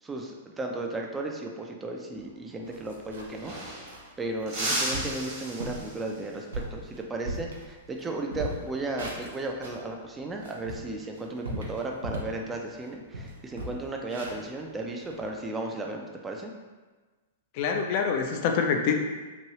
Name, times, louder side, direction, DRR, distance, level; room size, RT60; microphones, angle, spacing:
voice 1, 0.0-3.8 4.2-16.5, right 2 dB, 15° right, 1 dB, 0.4 m, -35 dB
sound 1, 2.2-2.3 2.6-3.4 3.9-4.1 4.5-4.6 4.9-5.2 5.6-5.9 6.3-8.0 8.3-9.8 10.3-12.4 12.8-12.9 13.1-15.3, right 1 dB, 75° right, 0.6 m, -38 dB
sound 2, 2.8-2.9 3.1-4.1 4.5-6.2 8.7-9.0 10.4-10.9, right 1 dB, 45° right, 1.2 m, -34 dB
voice 2, 17.5-18.9, left 6 dB, 45° left, 3 dB, 0.4 m, -25 dB
3.0 x 2.6 x 2.9 m, 1.3 s
figure-of-eight pair, 105°, 0 cm